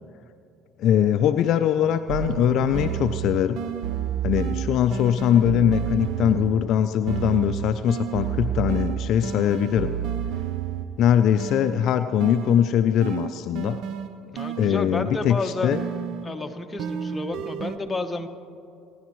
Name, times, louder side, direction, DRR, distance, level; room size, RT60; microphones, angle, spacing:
voice 1, 0.8-3.6 4.2-9.9 11.0-13.8 14.6-15.8, left 9 dB, 60° left, 10 dB, 0.4 m, -21 dB
sound 1, 2.1-6.7 7.1-11.0 11.4-15.1 15.7-17.8, right 9 dB, 65° right, 0.7 m, -30 dB
voice 2, 14.2-15.8 16.2-18.3, left 2 dB, 15° left, 4 dB, 1.1 m, -31 dB
23.5 x 11.0 x 3.1 m, 2.5 s
supercardioid pair, 85°, 0 cm